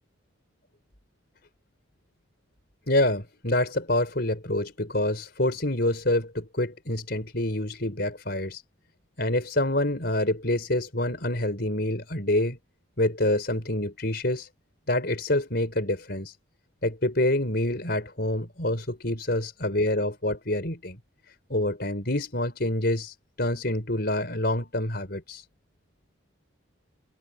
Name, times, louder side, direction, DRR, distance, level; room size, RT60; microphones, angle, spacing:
voice 1, 2.9-8.6 9.2-12.6 13.0-14.5 14.9-16.3 16.8-21.0 21.5-25.4, left 1 dB, 50° left, 4.9 m, -27 dB
head